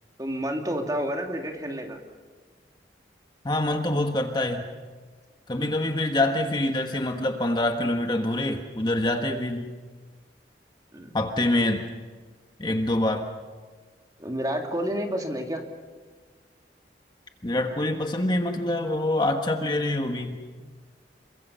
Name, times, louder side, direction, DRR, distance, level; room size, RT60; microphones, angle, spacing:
voice 1, 0.2-2.0 5.5-5.8 9.3-9.4 10.9-11.1 14.2-15.6, equal, 20° right, 3 dB, 2.7 m, -30 dB
voice 2, 3.4-4.7 5.5-9.7 11.1-11.8 12.6-13.3 17.4-20.6, left 1 dB, 25° left, 5 dB, 1.4 m, -25 dB
28.0 x 24.0 x 5.6 m, 1.5 s
head